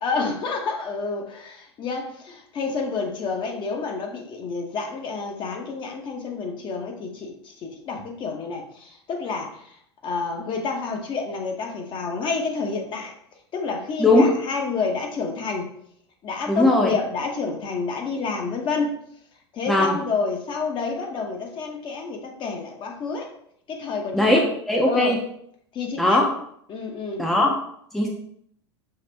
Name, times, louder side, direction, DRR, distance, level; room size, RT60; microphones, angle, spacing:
voice 1, 0.0-13.1 13.5-15.7 16.2-19.0 19.5-23.3 23.7-24.4 24.9-25.2 25.7-26.2 26.7-27.3, left 4 dB, 35° left, 2 dB, 0.9 m, -29 dB
voice 2, 16.5-16.9 19.7-19.9 24.1-25.2 26.0-26.3 27.2-27.5 27.9-28.1, left 1 dB, ahead, -1 dB, 0.7 m, -18 dB
5.6 x 2.5 x 3.3 m, 0.68 s
figure-of-eight pair, 85°, 15 cm